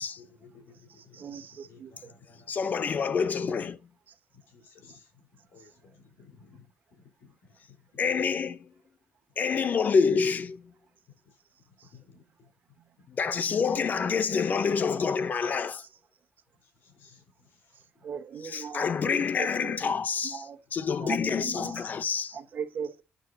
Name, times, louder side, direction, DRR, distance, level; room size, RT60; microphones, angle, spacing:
voice 1, 0.1-3.0 4.3-8.1 11.2-11.4 11.6-12.5 13.0-13.1 16.6-18.0, left 5 dB, 85° left, 4.8 m, -57 dB
voice 2, 0.9-2.1 4.1-4.2 15.0-15.1 18.0-20.6 21.0-21.9 22.3-23.0, right 7 dB, 60° right, 1.2 m, -39 dB
voice 3, 2.5-3.9 8.0-8.7 9.4-10.7 13.1-15.8 18.4-22.4, left 5 dB, 50° left, 0.9 m, -27 dB
9.4 x 6.6 x 2.9 m
cardioid pair, 75°, 4 cm